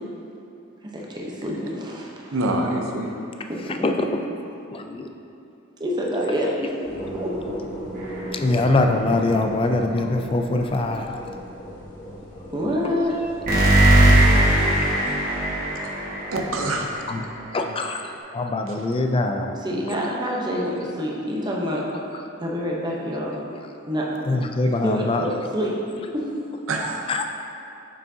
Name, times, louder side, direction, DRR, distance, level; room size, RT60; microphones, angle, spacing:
voice 1, 0.9-2.4 3.5-3.7 5.8-6.7 7.1-7.3 12.5-13.1 19.5-21.8 22.4-23.4 23.9-24.1 24.8-25.8 26.1-26.3, equal, 20° right, -3 dB, 0.8 m, -27 dB
voice 2, 2.3-3.1 15.8-15.9 16.3-16.9 18.7-18.9 26.7-27.1, right 2 dB, 85° right, 1 dB, 0.7 m, -26 dB
voice 3, 4.7-5.1 6.4-6.6 8.4-11.2 12.8-13.0 17.1-17.2 17.5-18.0 18.3-19.5 24.3-25.5 27.1-27.2, left 2 dB, 25° left, 5 dB, 0.3 m, -23 dB
sound 1, 6.8-17.2, equal, 45° left, 1.3 m, -38 dB
sound 2, 8.0-8.7 13.5-17.1, right 1 dB, 40° right, 1.5 m, -19 dB
6.9 x 6.2 x 2.8 m, 2.6 s
head